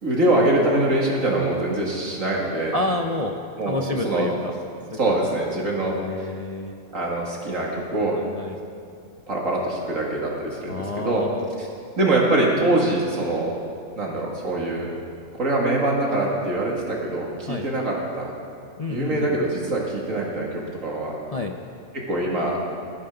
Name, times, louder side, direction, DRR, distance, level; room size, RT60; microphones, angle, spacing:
voice 1, 0.0-2.8 3.6-4.3 4.8-6.0 6.9-8.2 8.8-8.9 9.3-11.2 11.6-11.7 12.0-13.5 13.9-14.9 15.4-18.3 18.9-21.2 21.9-22.6, right 2 dB, 70° right, -3 dB, 2.8 m, -24 dB
voice 2, 2.7-3.4 3.7-4.3 4.9-5.0 5.8-6.7 8.2-8.6 10.7-11.5 17.5-17.7 18.8-19.4 21.3-21.5, left 2 dB, 35° left, 2 dB, 0.6 m, -29 dB
19.5 x 14.5 x 3.9 m, 2.4 s
omnidirectional pair, 1.4 m